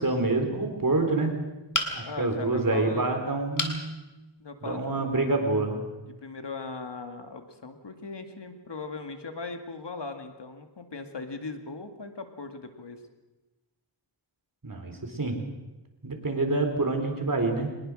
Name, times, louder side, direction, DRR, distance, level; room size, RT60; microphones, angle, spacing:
voice 1, 0.0-1.3 1.9-3.8 4.6-5.8 14.6-15.4 16.0-17.7, right 2 dB, 45° right, 4 dB, 4.3 m, -27 dB
sound 1, 1.7-2.3 3.6-3.8 4.4-4.5 4.8-4.9, left 2 dB, 40° left, 3.0 m, -29 dB
voice 2, 2.0-3.1 4.4-5.6 6.1-13.0, left 4 dB, 60° left, 6 dB, 2.4 m, -39 dB
24.0 x 20.5 x 6.4 m, 1.1 s
wide cardioid pair, 75°, 47 cm